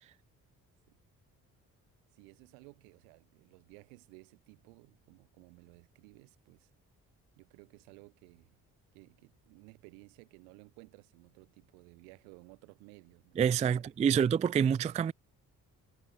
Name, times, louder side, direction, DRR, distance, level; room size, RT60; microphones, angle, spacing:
voice 1, 2.1-6.7 7.4-8.6 8.9-13.4 13.7-14.1, right 38 dB, 80° right, 2.6 m, -57 dB
voice 2, 13.4-15.1, right 7 dB, 15° right, 0.3 m, -27 dB
hypercardioid pair, 40°, 44 cm